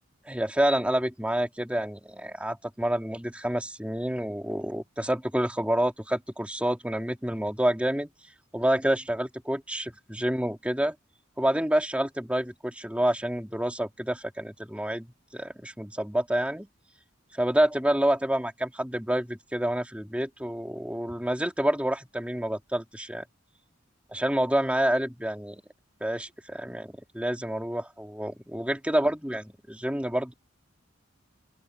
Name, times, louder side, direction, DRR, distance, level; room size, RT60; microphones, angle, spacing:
voice 1, 0.3-8.1 8.5-10.9 11.4-15.1 15.3-16.7 17.4-23.2 24.1-25.6 26.0-30.3, right 1 dB, 5° right, 2.4 m, -28 dB
open air
head